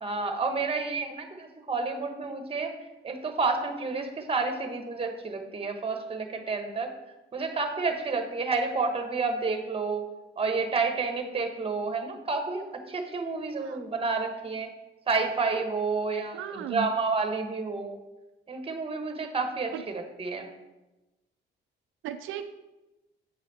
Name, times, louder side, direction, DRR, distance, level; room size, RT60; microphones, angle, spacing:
voice 1, 0.0-2.7 3.0-6.9 7.3-10.1 10.4-14.7 15.1-18.0 18.5-20.5, right 4 dB, 30° right, 5 dB, 1.2 m, -30 dB
voice 2, 16.3-16.9 19.7-19.8 22.0-22.4, right 9 dB, 85° right, 8 dB, 0.4 m, -35 dB
8.4 x 5.1 x 4.1 m, 1.0 s
cardioid pair, 90°, 20 cm